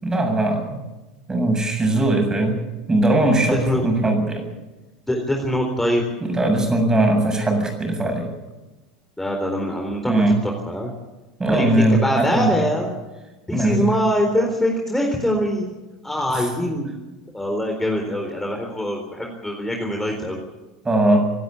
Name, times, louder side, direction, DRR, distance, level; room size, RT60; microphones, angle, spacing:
voice 1, 0.0-0.8 1.3-2.6 2.9-4.5 6.2-8.3 10.1-10.4 11.4-12.7 13.5-13.9 16.3-16.5 20.8-21.3, right 1 dB, 15° right, 4 dB, 7.4 m, -20 dB
voice 2, 3.5-3.9 5.1-6.0 9.2-10.9 11.6-12.9 13.5-15.7 16.0-16.9 17.3-20.4, equal, 5° left, 2 dB, 4.0 m, -23 dB
26.0 x 12.5 x 8.7 m, 1.1 s
figure-of-eight pair, 80°, 4 cm